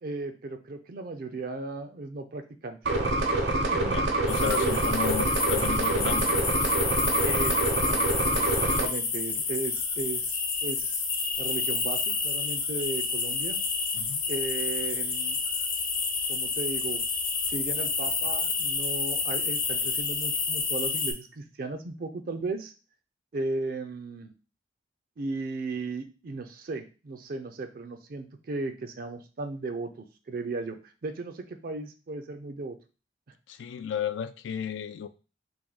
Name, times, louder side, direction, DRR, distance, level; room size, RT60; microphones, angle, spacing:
voice 1, 0.0-2.8 3.3-4.8 7.2-8.1 8.4-11.0 11.4-13.6 14.3-15.4 16.3-17.0 17.5-22.7 23.3-24.3 25.2-32.8, right 3 dB, 50° right, 0.4 m, -36 dB
sound 1, 2.8-8.9, right 2 dB, 75° right, 0.8 m, -26 dB
voice 2, 3.8-6.5 13.9-14.2 33.5-35.1, left 8 dB, 80° left, 0.3 m, -33 dB
sound 2, 4.3-21.1, left 4 dB, 50° left, 0.8 m, -29 dB
3.4 x 2.6 x 3.8 m
head